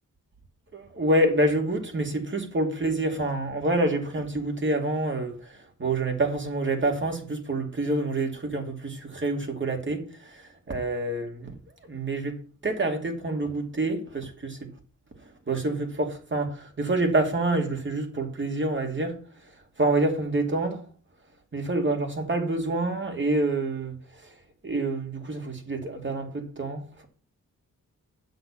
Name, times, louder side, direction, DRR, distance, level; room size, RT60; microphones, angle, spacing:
voice 1, 0.7-5.3 5.8-11.5 11.9-12.4 12.6-14.6 15.5-19.2 19.8-20.8 21.5-24.0 24.6-27.0, right 2 dB, 35° right, 2.5 m, -27 dB
7.9 x 6.3 x 7.2 m
cardioid pair, 80°, 32 cm